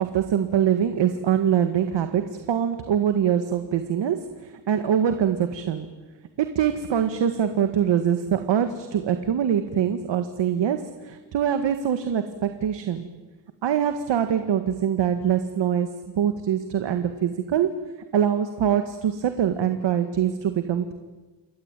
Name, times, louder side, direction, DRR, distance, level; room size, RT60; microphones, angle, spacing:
voice 1, 0.0-5.9 6.4-13.1 13.6-17.8 18.1-20.9, right 9 dB, 90° right, 8 dB, 1.9 m, -24 dB
29.0 x 22.5 x 9.1 m, 1.3 s
wide cardioid pair, 160°, 42 cm